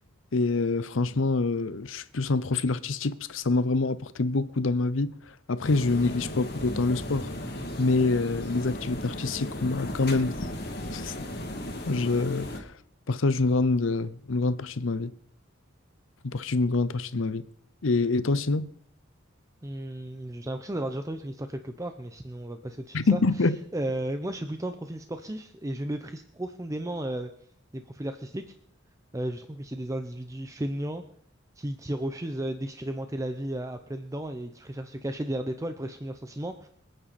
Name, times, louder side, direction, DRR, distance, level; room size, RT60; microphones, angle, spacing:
voice 1, 0.3-5.1 5.5-7.3 7.8-10.5 10.9-11.1 11.9-12.7 13.1-15.1 16.2-17.4 17.8-18.7 22.9-23.6, left 3 dB, 80° left, 0.7 m, -26 dB
sound 1, 5.6-12.6, left 1 dB, 55° left, 2.3 m, -36 dB
voice 2, 19.6-23.2 23.7-27.3 27.7-28.4 29.1-31.0 31.6-36.7, right 1 dB, 15° right, 0.7 m, -34 dB
25.5 x 8.9 x 4.2 m
head